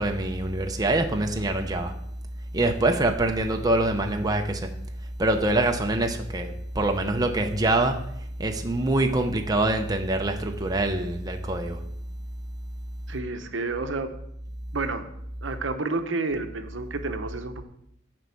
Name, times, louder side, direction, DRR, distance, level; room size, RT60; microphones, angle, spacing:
voice 1, 0.0-1.9 2.5-4.8 5.2-8.1 8.4-11.8, right 2 dB, 20° right, 0.6 m, -25 dB
voice 2, 13.1-14.1 14.7-15.1 15.4-17.6, right 3 dB, 70° right, 0.8 m, -30 dB
7.7 x 5.2 x 7.0 m
head